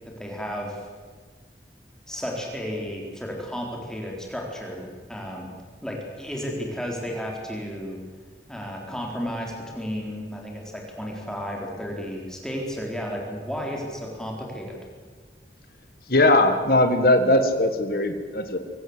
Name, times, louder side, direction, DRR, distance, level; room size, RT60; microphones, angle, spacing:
voice 1, 0.2-0.9 2.1-5.6 5.8-8.0 8.5-14.8, equal, 5° left, 0 dB, 3.8 m, -33 dB
voice 2, 16.1-18.6, left 1 dB, 55° left, 7 dB, 1.8 m, -19 dB
24.0 x 17.5 x 8.0 m, 1.5 s
head